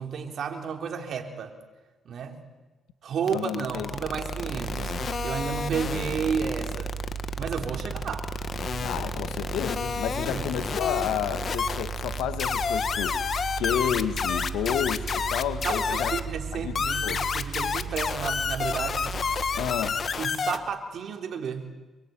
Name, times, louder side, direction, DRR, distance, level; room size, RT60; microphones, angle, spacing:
voice 1, 0.0-1.5 2.1-2.4 3.0-4.9 5.2-6.9 7.4-8.3 10.3-10.5 14.6-14.8 15.6-19.2 20.2-21.7, right 6 dB, 60° right, 4 dB, 3.9 m, -32 dB
voice 2, 3.3-3.9 8.8-13.2 13.6-16.2 16.5-16.7 17.0-17.2 19.6-20.0, left 10 dB, 90° left, 10 dB, 1.9 m, -31 dB
sound 1, 3.3-16.2 16.8-20.6, left 6 dB, 50° left, 1.7 m, -30 dB
Mechanical fan, 3.7-20.5, right 6 dB, 40° right, 2.8 m, -36 dB
26.5 x 23.5 x 9.2 m, 1.2 s
cardioid pair, 90°, 0 cm